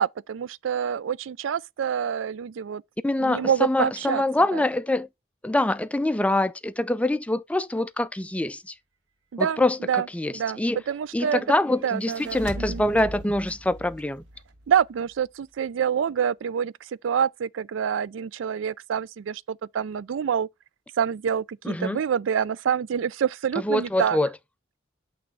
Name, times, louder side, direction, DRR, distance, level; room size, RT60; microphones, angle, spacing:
voice 1, 0.0-2.8 3.2-4.2 4.5-4.6 9.3-9.6 9.9-10.1 10.3-10.6 10.9-11.4 11.8-12.8 14.7-16.7 17.0-20.5 21.0-24.2, right 8 dB, 85° right, 0.4 m, -26 dB
voice 2, 3.0-5.1 5.4-8.7 9.4-10.8 11.1-14.2 21.6-22.0 23.6-24.3, left 1 dB, 5° left, 0.3 m, -25 dB
sound 1, 11.9-15.2, equal, 65° right, 1.9 m, -40 dB
8.5 x 3.2 x 5.3 m
head